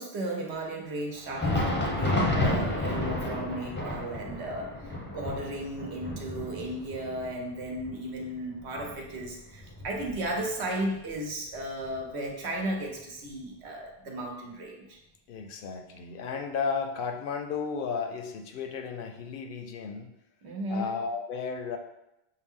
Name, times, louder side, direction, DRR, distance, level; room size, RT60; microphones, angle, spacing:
voice 1, 0.0-15.0 20.4-21.0, right 1 dB, 85° right, 0 dB, 1.2 m, -35 dB
Thunder, 1.2-10.6 11.0-11.1 11.8-12.0 13.0-13.1, left 1 dB, 15° left, 0.5 m, -32 dB
voice 2, 15.3-20.1 20.7-21.8, left 5 dB, 65° left, 5 dB, 0.7 m, -34 dB
6.4 x 2.2 x 3.6 m, 0.89 s
omnidirectional pair, 1.1 m